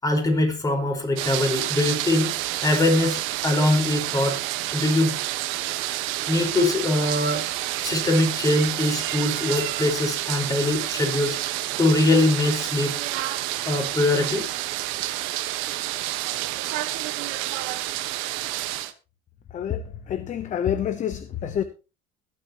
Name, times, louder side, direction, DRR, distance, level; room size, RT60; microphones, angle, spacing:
voice 1, 0.0-2.3 2.6-4.4 4.7-5.1 6.3-7.5 7.8-12.9 13.6-14.5, left 2 dB, 15° left, 4.9 m, -22 dB
sound 1, 1.2-18.9, right 15 dB, 75° right, 1.4 m, -29 dB
voice 2, 19.5-21.6, left 9 dB, 40° left, 0.9 m, -28 dB
21.5 x 8.5 x 3.0 m
cardioid pair, 120°, 20 cm